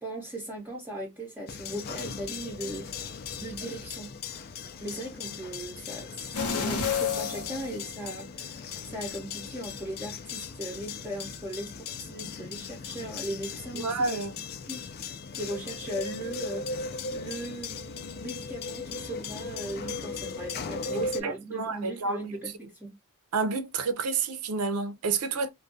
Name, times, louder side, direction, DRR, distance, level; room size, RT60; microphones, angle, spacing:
voice 1, 0.0-2.9 3.4-4.2 4.8-6.2 6.5-14.9 15.3-16.7 17.1-22.9, right 1 dB, 10° right, 0.6 m, -38 dB
sound 1, 1.5-21.2, left 4 dB, 45° left, 0.4 m, -38 dB
sound 2, 6.3-8.5 8.9-9.0, left 6 dB, 90° left, 0.7 m, -30 dB
voice 2, 13.8-14.3 20.9-22.2 23.3-25.5, right 4 dB, 85° right, 0.5 m, -29 dB
2.4 x 2.2 x 2.5 m
head